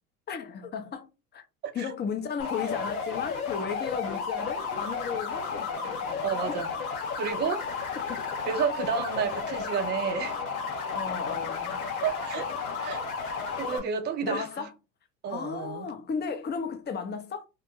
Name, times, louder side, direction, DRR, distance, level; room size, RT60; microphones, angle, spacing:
voice 1, 0.3-1.4 1.7-6.6 8.1-8.2 10.9-11.8 14.2-14.7 15.3-17.5, left 6 dB, 25° left, 0.6 m, -35 dB
voice 2, 1.6-1.9 6.2-6.7 7.1-7.9 8.5-10.3 12.0-12.5 12.8-14.7 15.2-15.9, right 6 dB, 25° right, 0.5 m, -31 dB
sound 1, 2.4-13.8, left 5 dB, 80° left, 0.7 m, -33 dB
2.4 x 2.2 x 2.8 m
hypercardioid pair, 80°, 43 cm